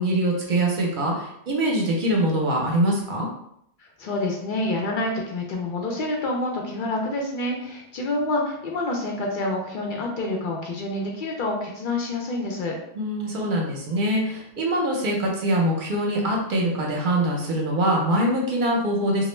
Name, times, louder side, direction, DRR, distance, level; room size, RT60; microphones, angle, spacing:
voice 1, 0.0-3.3 13.0-19.3, right 1 dB, 50° right, -1 dB, 0.7 m, -23 dB
voice 2, 3.8-12.8, left 2 dB, 60° left, 0 dB, 0.5 m, -27 dB
2.4 x 2.1 x 3.1 m, 0.73 s
omnidirectional pair, 1.2 m